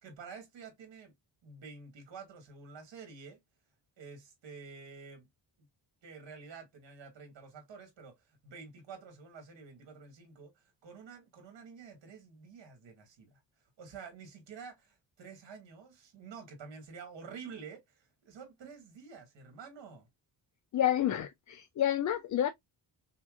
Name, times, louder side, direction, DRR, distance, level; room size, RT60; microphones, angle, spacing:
voice 1, 0.0-1.1 1.4-3.4 4.0-5.3 6.0-13.4 13.8-20.1, right 5 dB, 80° right, 1.9 m, -49 dB
voice 2, 20.7-22.5, left 11 dB, 45° left, 0.4 m, -29 dB
5.7 x 2.5 x 2.4 m
wide cardioid pair, 155°, 44 cm